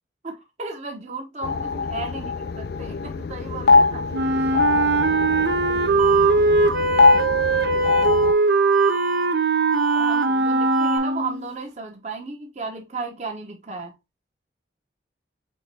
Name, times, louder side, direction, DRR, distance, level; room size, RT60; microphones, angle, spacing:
voice 1, 0.2-2.3 2.8-4.1 9.9-13.9, right 4 dB, 35° right, 0.9 m, -34 dB
sound 1, 1.4-8.3, left 4 dB, 55° left, 0.4 m, -22 dB
Wind instrument woodwind instrument, 4.1-11.5, right 3 dB, 60° right, 0.5 m, -20 dB
sound 2, 6.0-11.0, right 2 dB, ahead, 0.6 m, -31 dB
4.4 x 3.5 x 3.3 m
head